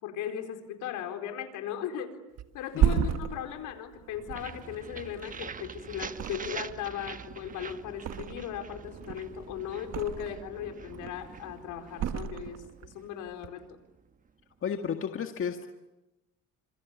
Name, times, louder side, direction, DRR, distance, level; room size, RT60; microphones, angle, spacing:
voice 1, 0.0-2.1 2.5-13.8, left 9 dB, 70° left, 6 dB, 4.5 m, -37 dB
Thump thud, 2.4-5.7 6.1-6.9 7.2-8.6 9.0-10.5 10.9-11.4 11.9-12.9 13.3-13.5, right 9 dB, 50° right, 1.6 m, -32 dB
sound 1, 4.3-14.1, right 6 dB, 25° right, 1.1 m, -45 dB
voice 2, 14.6-15.7, left 7 dB, 40° left, 5 dB, 1.8 m, -32 dB
29.0 x 26.5 x 7.4 m, 0.98 s
cardioid pair, 105°, 32 cm